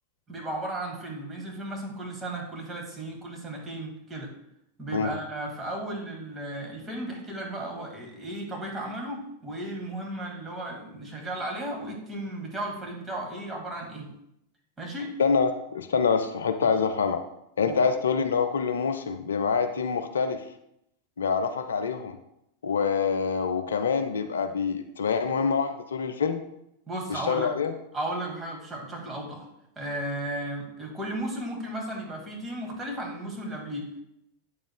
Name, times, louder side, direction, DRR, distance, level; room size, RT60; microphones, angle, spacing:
voice 1, 0.3-4.3 4.8-14.1 14.8-15.1 16.6-16.7 17.6-17.8 26.9-27.6 27.9-29.5 29.8-34.0, right 1 dB, 10° right, -1 dB, 1.9 m, -35 dB
voice 2, 15.2-17.2 17.6-20.4 21.2-22.2 22.6-26.4 27.1-27.7, left 5 dB, 65° left, 9 dB, 0.4 m, -26 dB
8.7 x 7.0 x 2.2 m, 0.80 s
figure-of-eight pair, 90°, 0 cm